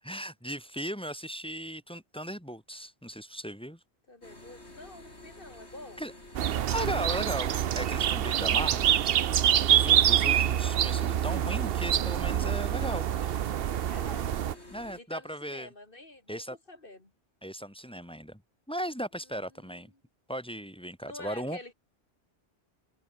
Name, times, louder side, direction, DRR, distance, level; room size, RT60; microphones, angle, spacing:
voice 1, 0.0-3.8 6.0-9.0 9.6-13.5 14.7-15.7 16.3-16.6 17.4-18.4 18.7-19.9 20.3-21.6, equal, 5° left, 3.7 m, -37 dB
voice 2, 4.1-6.0 9.9-10.4 13.9-14.3 15.0-17.1 19.5-19.7 21.0-21.7, left 2 dB, 55° left, 3.6 m, -48 dB
sound 1, 4.2-15.0, left 1 dB, 80° left, 6.5 m, -50 dB
sound 2, 6.3-14.5, right 10 dB, 65° right, 0.8 m, -26 dB
omnidirectional pair, 1.1 m